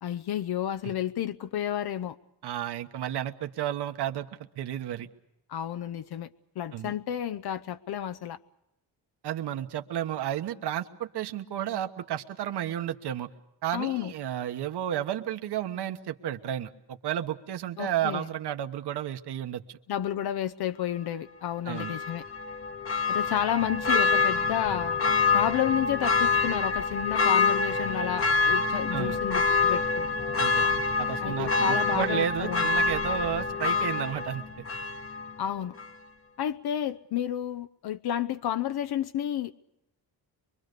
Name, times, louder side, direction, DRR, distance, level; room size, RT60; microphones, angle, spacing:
voice 1, 0.0-2.2 5.5-6.3 6.6-8.4 13.7-14.1 17.8-18.2 19.9-22.2 23.1-25.0 25.3-30.1 31.2-32.7 35.4-35.7 36.4-39.5, left 10 dB, 65° left, 0.8 m, -31 dB
voice 2, 2.4-4.3 4.6-5.1 6.7-6.9 9.2-13.3 13.6-19.8 21.6-22.0 28.9-29.2 30.4-34.6, right 10 dB, 75° right, 1.3 m, -32 dB
Church bell, 21.7-35.4 35.8-35.9, left 4 dB, 35° left, 1.1 m, -26 dB
24.0 x 24.0 x 6.7 m
wide cardioid pair, 175°, 40 cm